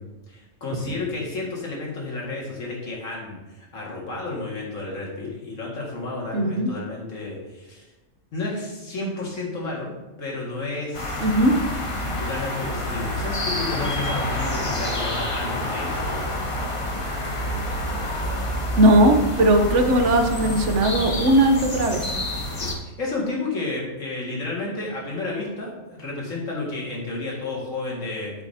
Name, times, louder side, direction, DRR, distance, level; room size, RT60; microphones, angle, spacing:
voice 1, 0.0-7.9 8.3-9.9 10.2-11.3 12.2-15.9 22.6-28.3, left 2 dB, 80° left, -3 dB, 2.3 m, -31 dB
voice 2, 6.3-6.7 11.2-11.5 18.8-22.2, right 1 dB, 70° right, 5 dB, 1.2 m, -18 dB
sound 1, 10.9-22.7, left 1 dB, 30° left, 0.9 m, -28 dB
8.6 x 7.2 x 2.8 m, 1.1 s
omnidirectional pair, 1.3 m